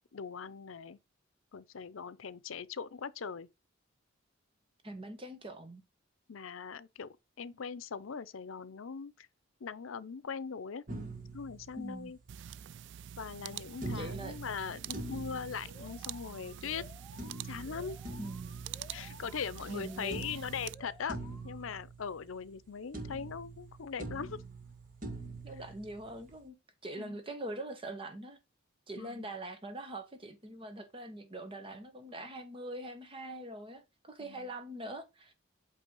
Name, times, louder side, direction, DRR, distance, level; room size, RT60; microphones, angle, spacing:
voice 1, 0.1-1.0 1.5-3.5 6.3-7.1 7.4-9.3 9.6-10.8 11.3-12.2 13.2-16.8 17.4-18.0 18.9-21.2 21.4-24.4 27.0-27.2 29.0-29.3 34.2-34.5, left 6 dB, 85° left, 0.6 m, -40 dB
voice 2, 4.8-5.8 11.8-12.2 13.9-14.4 18.2-18.6 19.7-20.4 25.4-26.6 26.8-28.4 28.9-35.3, right 1 dB, 25° right, 1.3 m, -43 dB
sound 1, 10.9-12.4 13.8-16.4 17.2-19.8 20.1-22.7 22.9-26.4, right 2 dB, 40° right, 2.0 m, -45 dB
sound 2, 12.3-20.7, right 9 dB, 60° right, 0.3 m, -46 dB
Alarm, 15.7-21.7, left 2 dB, 20° left, 1.5 m, -56 dB
8.5 x 3.3 x 5.3 m
head